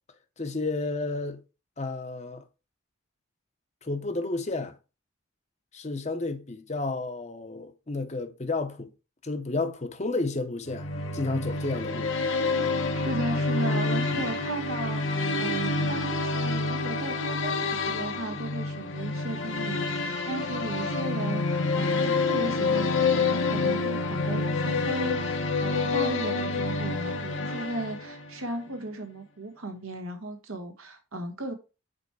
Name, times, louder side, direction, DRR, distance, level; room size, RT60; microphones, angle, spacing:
voice 1, 0.4-1.4 1.8-2.4 3.8-4.7 5.7-8.9 9.2-12.1 14.1-14.2, left 3 dB, 30° left, 0.7 m, -31 dB
sound 1, 10.7-28.4, left 3 dB, 65° left, 0.9 m, -28 dB
voice 2, 12.9-31.5, right 2 dB, 85° right, 1.3 m, -36 dB
5.1 x 4.4 x 4.6 m
head